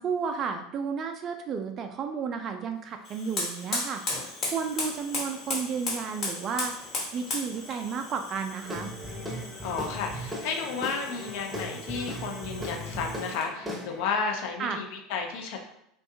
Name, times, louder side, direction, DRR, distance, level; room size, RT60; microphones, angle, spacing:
voice 1, 0.0-6.7 7.1-8.9 14.6-14.8, right 6 dB, 40° right, 6 dB, 0.3 m, -32 dB
Fire, 3.0-13.6, left 2 dB, 40° left, 1.1 m, -37 dB
Guitar / Drum, 8.7-14.2, equal, 10° right, 0.7 m, -38 dB
voice 2, 9.6-15.6, left 5 dB, 60° left, 2 dB, 0.4 m, -32 dB
2.6 x 2.2 x 2.6 m, 0.77 s
figure-of-eight pair, 75°, 0 cm